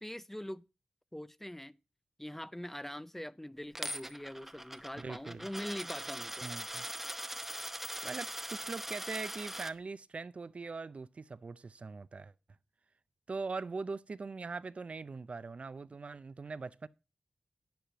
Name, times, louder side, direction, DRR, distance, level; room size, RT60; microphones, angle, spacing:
voice 1, 0.0-0.6 1.1-1.8 2.2-6.5, left 1 dB, 10° left, 0.4 m, -43 dB
Coin (dropping), 3.8-9.7, right 1 dB, 10° right, 0.8 m, -41 dB
voice 2, 5.0-5.5 6.4-6.8 8.0-12.3 13.3-16.9, right 4 dB, 50° right, 0.5 m, -41 dB
10.5 x 9.3 x 2.9 m
cardioid pair, 40°, 3 cm